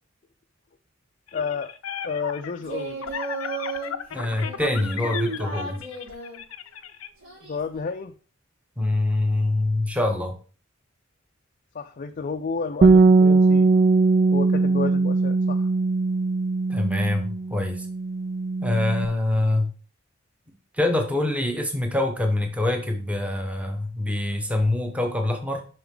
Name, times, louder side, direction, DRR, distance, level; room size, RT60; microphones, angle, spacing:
sound 1, 1.3-7.1, left 8 dB, 90° left, 0.6 m, -35 dB
voice 1, 1.3-1.7 2.0-3.0 7.4-8.1 11.7-13.7 14.3-15.7, left 5 dB, 40° left, 5 dB, 0.5 m, -31 dB
Singing, 2.6-3.9 4.4-6.4 7.2-7.8, right 3 dB, 75° right, 4.1 m, -34 dB
voice 2, 4.1-5.8 8.8-10.4 16.7-17.9 18.6-19.7 20.7-25.6, left 2 dB, 5° right, 4 dB, 1.1 m, -25 dB
Bass guitar, 12.8-19.1, right 3 dB, 40° right, 0.3 m, -20 dB
6.9 x 5.8 x 3.8 m, 0.38 s
head